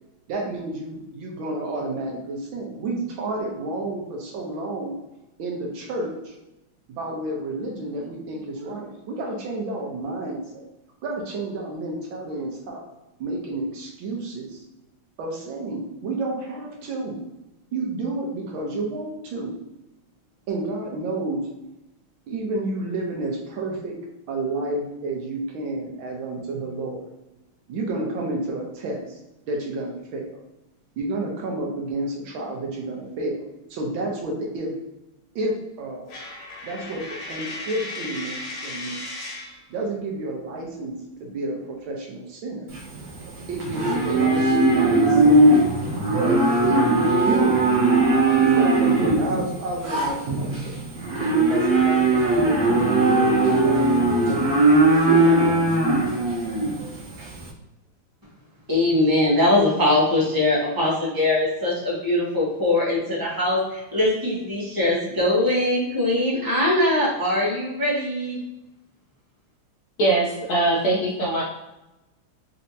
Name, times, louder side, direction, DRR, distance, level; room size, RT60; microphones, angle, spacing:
voice 1, 0.3-5.0 5.4-6.4 6.9-10.6 11.0-12.8 13.2-14.6 15.2-17.2 17.7-19.5 20.5-21.4 22.3-24.0 24.3-27.0 27.7-29.2 29.5-30.3 31.0-33.4 33.7-34.7 35.3-36.1 36.6-37.0 37.3-39.0 39.7-40.9 41.2-42.7 43.5-45.6 46.0-46.4 46.6-47.7 48.4-50.8 51.2-53.3 53.6-54.5 55.2-55.6, right 2 dB, 75° right, -1 dB, 1.5 m, -30 dB
Coin (dropping), 36.1-39.6, left 2 dB, 90° left, 1.7 m, -35 dB
Livestock farm animals working animals, 42.7-57.4, right 2 dB, 55° right, 1.3 m, -19 dB
voice 2, 58.7-68.4, left 1 dB, 20° right, -6 dB, 0.6 m, -21 dB
voice 3, 70.0-71.4, right 2 dB, 70° left, -4 dB, 1.0 m, -21 dB
4.2 x 2.8 x 2.7 m, 0.95 s
omnidirectional pair, 2.3 m